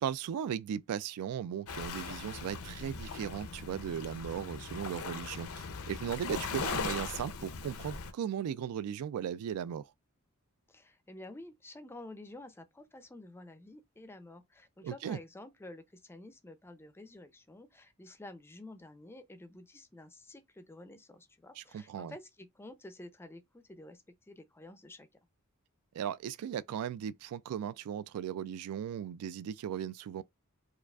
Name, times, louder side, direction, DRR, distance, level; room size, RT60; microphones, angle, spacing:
voice 1, 0.0-9.9 14.8-15.2 21.6-22.1 25.9-30.2, right 9 dB, 85° right, 0.3 m, -37 dB
Waves surf, 1.7-8.1, left 5 dB, 70° left, 0.5 m, -39 dB
voice 2, 10.7-25.1, left 1 dB, 10° left, 0.4 m, -50 dB
4.7 x 2.4 x 2.3 m
head